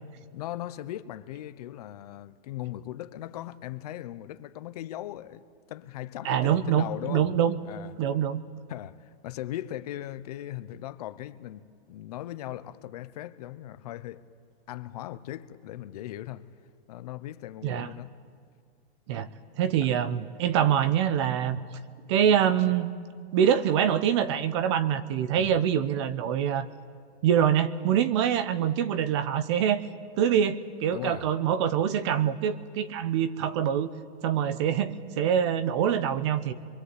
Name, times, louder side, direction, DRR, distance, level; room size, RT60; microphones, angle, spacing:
voice 1, 0.3-7.3 7.6-7.9 8.7-11.6 11.9-14.2 14.7-16.5 16.9-18.1 19.8-19.9 25.3-25.6 30.9-31.3, left 13 dB, 40° left, 0.8 m, -38 dB
voice 2, 6.2-7.6 8.0-8.4 17.6-17.9 19.1-19.3 19.6-21.6 22.1-22.9 23.3-26.7 27.2-29.8 30.2-33.9 34.2-36.5, right 9 dB, 30° right, 0.7 m, -25 dB
26.5 x 23.0 x 8.2 m
hypercardioid pair, 165°, 32 cm